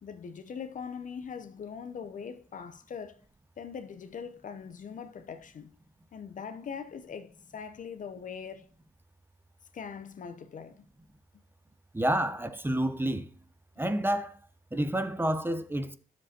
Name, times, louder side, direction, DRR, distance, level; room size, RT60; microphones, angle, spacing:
voice 1, 0.0-3.2 3.6-5.8 6.1-8.7 9.7-10.8, left 6 dB, 50° left, 0.8 m, -41 dB
voice 2, 11.9-13.3 13.8-14.3 14.7-16.0, right 1 dB, 10° right, 0.8 m, -29 dB
11.0 x 7.3 x 2.9 m
hypercardioid pair, 50°, 17 cm